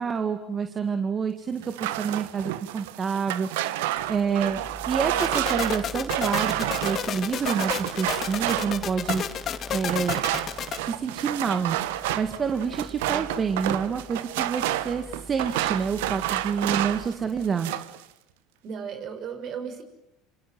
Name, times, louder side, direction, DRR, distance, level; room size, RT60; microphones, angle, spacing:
voice 1, 0.0-3.5 4.1-9.2 9.7-10.2 10.8-11.8 12.2-17.7, right 6 dB, 35° right, 7 dB, 2.2 m, -28 dB
sound 1, 1.6-9.3 9.9-17.1 17.4-18.0, right 14 dB, 70° right, 1.3 m, -29 dB
sound 2, 3.9-17.5, right 1 dB, 10° right, 3.8 m, -46 dB
sound 3, 5.2-10.8, left 9 dB, 45° left, 2.3 m, -31 dB
voice 2, 18.6-19.8, right 7 dB, 50° right, 8 dB, 6.3 m, -35 dB
27.5 x 27.0 x 7.7 m, 0.85 s
hypercardioid pair, 70°, 0 cm